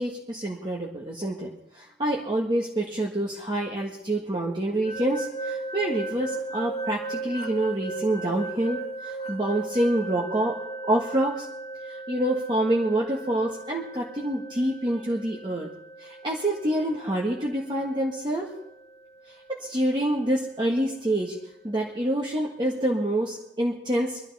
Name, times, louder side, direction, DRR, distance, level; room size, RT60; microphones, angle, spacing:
voice 1, 0.0-10.6 10.8-11.5 11.9-15.7 16.0-18.5 19.5-21.3 21.6-24.2, right 1 dB, 25° right, -2 dB, 1.5 m, -27 dB
sound 1, 4.8-19.7, right 3 dB, 40° left, 1.3 m, -37 dB
23.0 x 12.0 x 4.2 m, 0.84 s
head